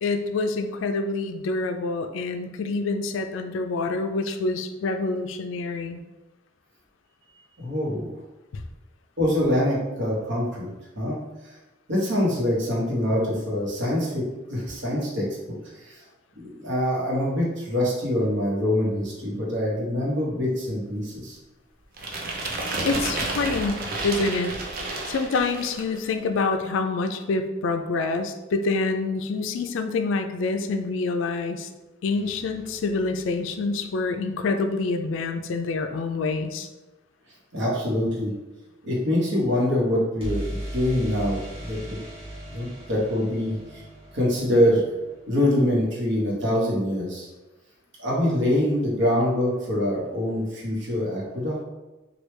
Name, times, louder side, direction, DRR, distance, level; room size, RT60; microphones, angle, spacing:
voice 1, 0.0-6.0 8.5-8.6 22.8-24.5 24.8-31.7 32.0-36.7, left 3 dB, 70° left, 7 dB, 0.3 m, -27 dB
voice 2, 7.6-8.1 9.2-10.7 11.0-11.2 11.9-14.2 14.5-15.5 15.9-16.0 16.4-21.4 37.5-38.3 38.8-42.0 42.5-43.6 44.1-44.9 45.3-47.3 48.0-51.6, left 1 dB, 65° right, -4 dB, 1.0 m, -24 dB
sound 1, 22.0-26.0, right 2 dB, 50° right, 0.5 m, -31 dB
sound 2, 32.1-34.1 40.2-46.0, equal, 30° right, 1.0 m, -38 dB
3.2 x 2.3 x 3.2 m, 1.1 s
head